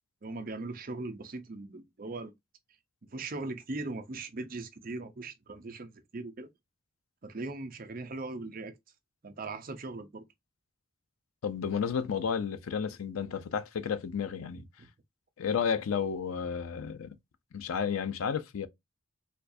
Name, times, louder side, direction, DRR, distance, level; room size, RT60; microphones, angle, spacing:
voice 1, 0.2-2.3 3.1-6.5 7.2-8.8 9.2-10.2 14.8-14.9, right 2 dB, 45° right, 0.6 m, -39 dB
voice 2, 11.4-14.6 15.4-17.1 17.5-18.7, left 7 dB, 90° left, 0.4 m, -32 dB
4.3 x 2.4 x 2.6 m
head